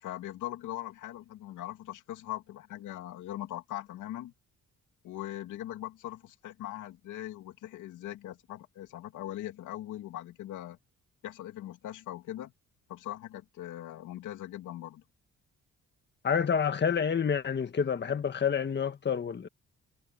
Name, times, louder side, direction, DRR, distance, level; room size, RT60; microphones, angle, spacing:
voice 1, 0.0-4.3 5.0-10.8 11.2-12.5 12.9-15.0, left 13 dB, 85° left, 2.7 m, -40 dB
voice 2, 16.2-19.5, left 7 dB, 35° left, 1.5 m, -28 dB
cardioid pair, 90°, 30 cm